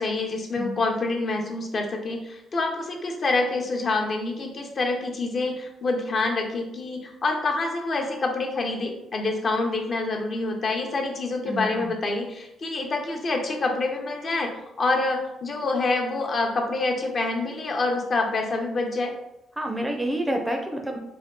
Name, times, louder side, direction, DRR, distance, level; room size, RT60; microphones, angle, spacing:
voice 1, 0.0-14.5 14.8-19.1, left 3 dB, 45° left, 2 dB, 0.7 m, -26 dB
voice 2, 11.5-11.9 19.6-21.0, right 1 dB, 10° right, 3 dB, 0.5 m, -28 dB
3.5 x 2.3 x 3.6 m, 0.86 s
cardioid pair, 90°, 0 cm